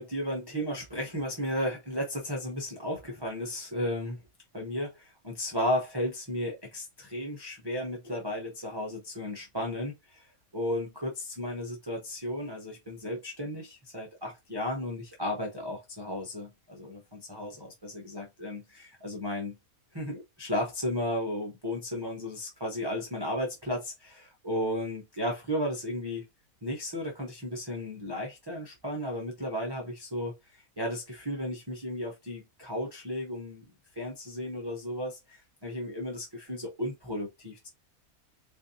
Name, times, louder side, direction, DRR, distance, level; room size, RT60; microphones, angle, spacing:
voice 1, 0.0-4.2 4.5-19.6 19.9-26.3 26.6-33.6 33.9-37.7, left 1 dB, 25° right, 0.7 m, -34 dB
4.2 x 2.6 x 2.7 m
omnidirectional pair, 1.5 m